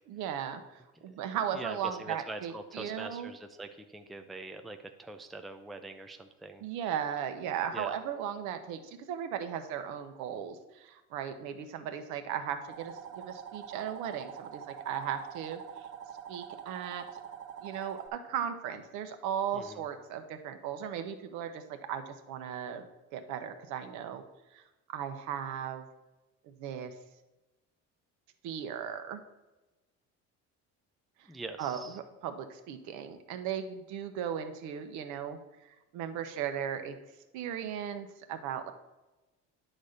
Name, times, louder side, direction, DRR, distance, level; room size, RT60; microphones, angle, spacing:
voice 1, 0.1-3.3 6.6-15.9 16.3-17.2 17.6-22.9 23.1-24.2 24.5-24.6 24.9-25.8 26.4-26.9 28.4-29.2 31.6-36.9 37.3-38.7, right 8 dB, 80° right, 8 dB, 1.0 m, -37 dB
voice 2, 1.5-6.6 7.7-8.0 19.5-19.8 31.3-32.0, right 2 dB, ahead, 6 dB, 0.3 m, -43 dB
sound 1, 12.7-18.1, right 8 dB, 55° right, 1.4 m, -45 dB
10.0 x 4.2 x 6.5 m, 1.1 s
cardioid pair, 155°, 29 cm